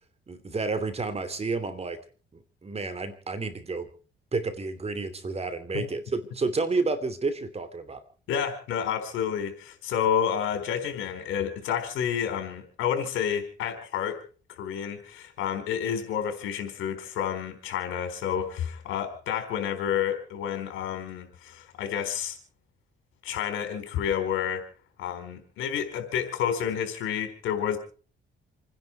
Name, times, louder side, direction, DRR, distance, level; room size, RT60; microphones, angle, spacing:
voice 1, 0.3-2.0 2.6-3.9 4.3-8.0, right 3 dB, 30° right, 11 dB, 2.9 m, -30 dB
voice 2, 8.3-14.2 14.6-22.4 23.2-24.6 25.0-27.8, left 8 dB, 85° left, 7 dB, 4.2 m, -30 dB
28.0 x 10.5 x 4.6 m, 0.39 s
cardioid pair, 90°, 20 cm